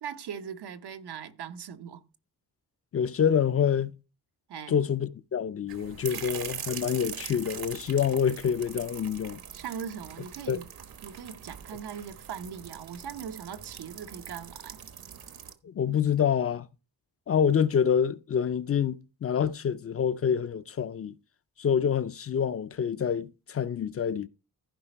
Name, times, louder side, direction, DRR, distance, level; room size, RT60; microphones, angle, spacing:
voice 1, 0.0-2.0 4.5-4.8 9.5-10.7 11.0-14.8, right 7 dB, 85° right, 1.1 m, -40 dB
voice 2, 2.9-3.9 4.7-9.4 10.5-10.6 15.6-16.7 17.3-21.1 21.6-24.3, left 8 dB, 40° left, 0.4 m, -27 dB
sound 1, 5.7-15.5, right 8 dB, 65° right, 1.1 m, -42 dB
15.0 x 5.1 x 4.4 m
wide cardioid pair, 160°, 39 cm